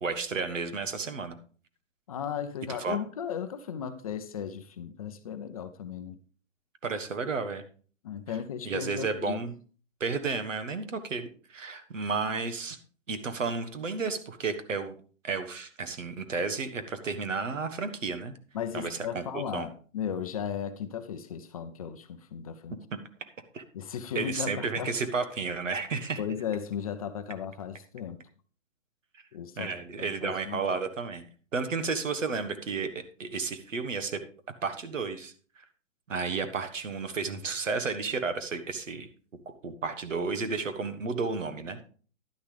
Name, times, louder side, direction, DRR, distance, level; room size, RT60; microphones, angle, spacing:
voice 1, 0.0-1.4 2.7-3.0 6.8-7.6 8.6-9.5 10.0-12.8 13.1-14.9 15.2-18.4 18.7-19.7 23.5-23.6 24.1-26.2 29.6-31.2 31.5-32.9 33.2-34.2 34.6-35.6 36.1-39.1 39.4-41.9, right 4 dB, 75° right, 9 dB, 1.5 m, -32 dB
voice 2, 2.1-6.2 8.0-9.4 18.5-22.8 23.7-24.9 26.2-28.2 29.3-29.7 30.0-30.7, left 8 dB, 30° left, 10 dB, 0.6 m, -36 dB
11.0 x 9.9 x 3.3 m, 0.41 s
hypercardioid pair, 140°, 38 cm